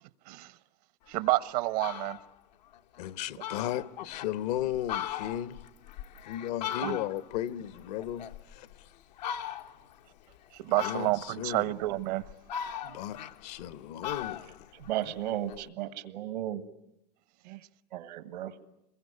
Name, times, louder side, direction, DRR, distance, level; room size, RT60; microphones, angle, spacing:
voice 1, 1.1-2.2 3.4-3.5 6.8-7.0 10.6-12.2 12.8-12.9 17.4-17.6, right 18 dB, 70° right, 1.1 m, -29 dB
Fowl, 1.2-1.3 1.6-2.2 2.7-2.8 3.1-3.2 3.4-4.3 4.7-7.4 7.7-8.7 9.2-9.9 10.8-11.4 12.0-13.7 14.0-15.6, left 10 dB, 85° left, 1.3 m, -38 dB
voice 2, 3.0-5.6 6.3-8.3 10.8-11.1 11.4-11.6 12.9-14.5, left 11 dB, 70° left, 1.1 m, -35 dB
voice 3, 14.8-16.6 17.9-18.5, right 12 dB, 85° right, 2.0 m, -34 dB
27.0 x 22.0 x 9.7 m
supercardioid pair, 115°, 21 cm